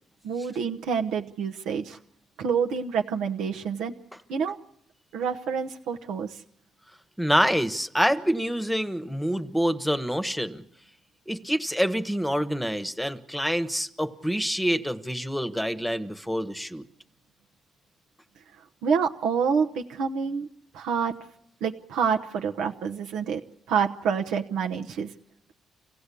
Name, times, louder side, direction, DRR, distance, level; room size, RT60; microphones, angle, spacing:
voice 1, 0.2-2.0 2.4-3.9 4.3-4.6 5.1-6.4 18.8-20.5 20.7-21.1 21.6-23.4 23.7-25.1, right 6 dB, 90° right, 3 dB, 0.9 m, -27 dB
voice 2, 7.2-10.6 11.3-16.8, equal, 5° left, 11 dB, 1.1 m, -26 dB
26.0 x 16.5 x 8.4 m, 0.76 s
cardioid pair, 90°, 0 cm